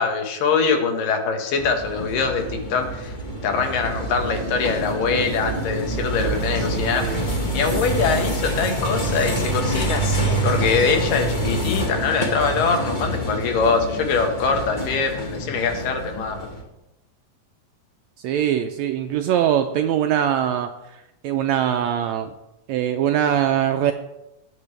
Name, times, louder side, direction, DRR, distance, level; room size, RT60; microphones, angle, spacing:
voice 1, 0.0-3.2 3.4-16.5, left 5 dB, 80° left, 4 dB, 3.1 m, -23 dB
sound 1, 1.6-16.6, right 1 dB, 20° left, 1.4 m, -26 dB
voice 2, 6.7-7.3 18.2-20.7 21.2-22.3 22.7-23.9, right 10 dB, 90° right, 6 dB, 1.6 m, -22 dB
19.0 x 8.7 x 3.3 m, 0.94 s
omnidirectional pair, 3.8 m